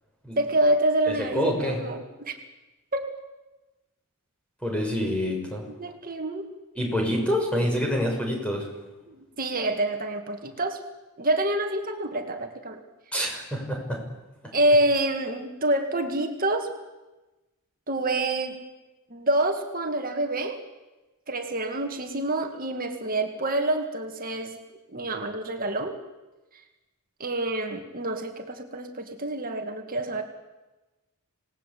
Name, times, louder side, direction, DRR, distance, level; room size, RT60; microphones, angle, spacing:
voice 1, 0.4-2.4 2.9-3.1 5.7-6.5 9.1-10.8 11.2-12.8 14.5-16.7 17.9-18.6 19.1-20.6 21.3-24.6 24.9-26.0 27.2-30.2, right 1 dB, 40° right, 4 dB, 2.2 m, -27 dB
voice 2, 1.1-1.8 4.6-5.6 6.8-8.7 13.1-14.0, equal, 5° left, 0 dB, 6.1 m, -27 dB
27.0 x 19.0 x 8.6 m, 1.1 s
head